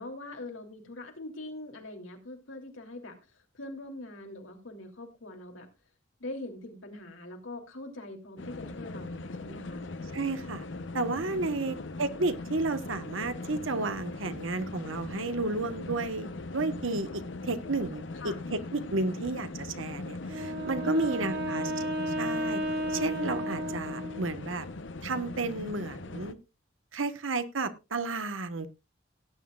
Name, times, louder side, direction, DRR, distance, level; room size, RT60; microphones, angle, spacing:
voice 1, 0.0-5.7 6.2-9.9 11.4-12.0 18.1-18.4 20.8-21.4, left 2 dB, 85° left, 3 dB, 3.0 m, -43 dB
sound 1, 8.4-26.3, left 2 dB, 70° left, 0.8 m, -40 dB
voice 2, 10.1-10.7 10.9-21.7 22.1-22.6 22.9-24.7 25.0-26.4 26.9-28.7, right 3 dB, 90° right, 11 dB, 1.2 m, -32 dB
Wind instrument woodwind instrument, 20.3-24.5, equal, 55° right, 2.0 m, -33 dB
17.5 x 9.6 x 2.4 m, 0.26 s
head